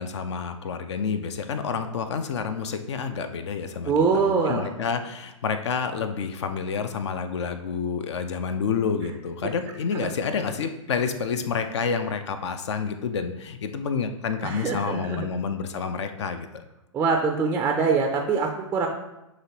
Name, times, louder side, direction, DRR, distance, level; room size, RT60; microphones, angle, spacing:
voice 1, 0.0-16.5, left 6 dB, 60° left, 8 dB, 0.5 m, -29 dB
voice 2, 3.9-4.7 9.4-9.5 9.9-10.1 14.4-15.3 16.9-18.9, right 5 dB, 10° right, 3 dB, 0.4 m, -24 dB
6.3 x 3.0 x 2.8 m, 0.93 s
figure-of-eight pair, 115°, 17 cm